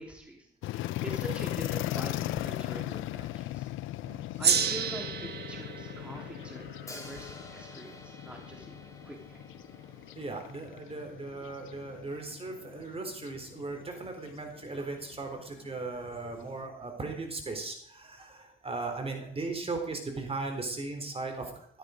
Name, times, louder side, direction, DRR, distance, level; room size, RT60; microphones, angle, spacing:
voice 1, 0.0-3.7 4.4-6.7 6.9-8.8 9.0-9.4, equal, 5° right, 0 dB, 3.2 m, -44 dB
sound 1, 0.6-16.6, left 15 dB, 80° left, 0.6 m, -39 dB
Gong, 4.4-9.2, right 7 dB, 55° right, 1.8 m, -33 dB
Hi-hat, 6.9-10.8, left 2 dB, 15° left, 3.5 m, -51 dB
voice 2, 10.1-21.7, right 3 dB, 30° right, 4 dB, 3.7 m, -37 dB
14.0 x 13.0 x 5.1 m, 0.64 s
cardioid pair, 90°, 20 cm